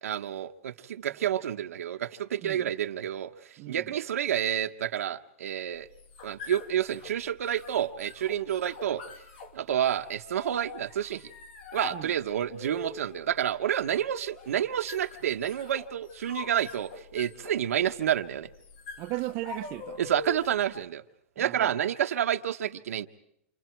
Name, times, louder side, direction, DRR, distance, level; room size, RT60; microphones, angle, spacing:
voice 1, 0.0-3.3 3.7-5.9 6.2-9.0 9.5-11.3 11.7-18.5 20.0-21.0 21.4-23.1, right 10 dB, 80° right, 1.3 m, -29 dB
voice 2, 2.4-2.7 3.6-3.9 11.9-12.1 19.0-20.0 21.4-21.8, right 19 dB, 30° right, 0.9 m, -36 dB
sound 1, 5.8-20.7, left 5 dB, 55° left, 3.0 m, -45 dB
30.0 x 27.5 x 4.6 m
hypercardioid pair, 155°, 8 cm